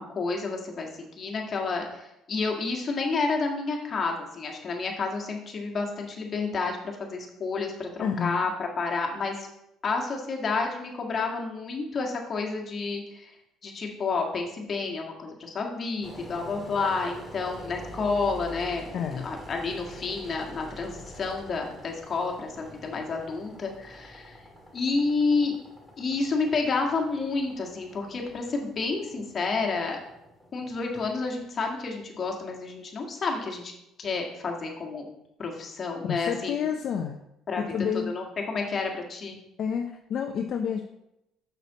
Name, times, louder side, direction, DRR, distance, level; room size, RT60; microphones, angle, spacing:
voice 1, 0.0-9.5 9.8-13.3 13.6-24.4 24.7-25.6 26.0-30.0 30.5-33.7 34.0-35.0 35.4-36.7 37.5-37.6 38.1-39.4, left 4 dB, 40° left, 1 dB, 1.7 m, -30 dB
voice 2, 8.0-8.4 18.9-19.3 36.1-37.2 37.6-38.1 39.6-40.8, left 7 dB, 55° left, 4 dB, 0.6 m, -29 dB
Engine, 16.0-32.9, equal, 10° right, 1.9 m, -46 dB
6.7 x 6.1 x 4.1 m, 0.84 s
cardioid pair, 105°, 0 cm